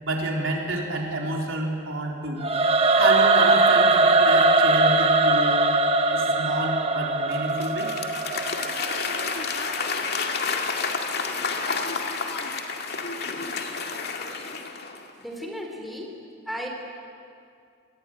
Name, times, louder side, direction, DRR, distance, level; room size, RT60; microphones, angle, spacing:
voice 1, 0.0-2.4 3.0-5.7 6.1-7.9, right 2 dB, 70° right, 0 dB, 4.2 m, -29 dB
Singing / Musical instrument, 2.4-9.5, right 3 dB, 30° right, 1.2 m, -21 dB
Applause / Crowd, 7.3-15.1, left 4 dB, 50° left, 2.2 m, -30 dB
voice 2, 15.2-16.2 16.5-16.7, equal, ahead, 0 dB, 3.6 m, -34 dB
27.0 x 21.0 x 9.2 m, 2.4 s
head